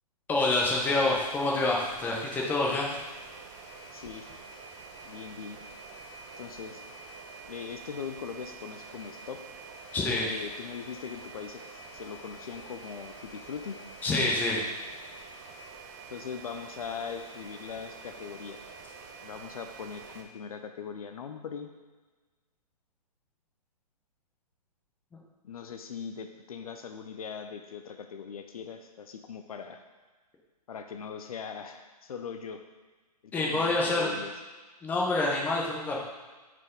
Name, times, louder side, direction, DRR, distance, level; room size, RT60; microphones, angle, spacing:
voice 1, 0.3-2.9 9.9-10.3 14.0-14.6 33.3-34.2 34.8-36.0, left 2 dB, 10° left, -2 dB, 0.7 m, -27 dB
sound 1, 0.8-20.2, right 4 dB, 25° right, 0.6 m, -47 dB
voice 2, 3.9-4.3 5.0-5.6 6.4-6.8 7.5-9.4 10.2-13.8 16.1-18.6 19.2-21.7 25.4-29.8 30.7-32.6 33.2-34.3, left 6 dB, 65° left, 6 dB, 0.6 m, -40 dB
6.0 x 4.6 x 3.7 m, 1.3 s
hypercardioid pair, 140°, 21 cm